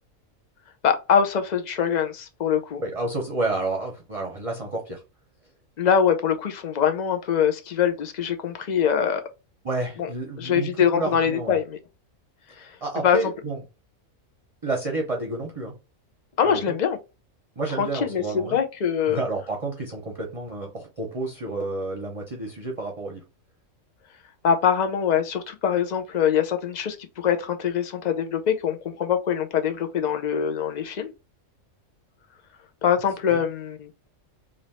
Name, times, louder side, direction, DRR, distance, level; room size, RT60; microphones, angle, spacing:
voice 1, 0.8-2.8 5.8-9.2 10.0-10.1 10.4-11.8 12.6-12.7 13.0-13.2 16.4-17.0 17.8-19.2 24.4-31.1 32.8-33.9, left 8 dB, 65° left, 0.4 m, -23 dB
voice 2, 2.8-5.0 9.6-11.6 12.8-13.6 14.6-15.7 16.4-16.8 17.6-18.6 19.1-23.2 33.3-33.4, right 2 dB, 35° right, 0.7 m, -30 dB
3.3 x 2.5 x 4.1 m
omnidirectional pair, 1.4 m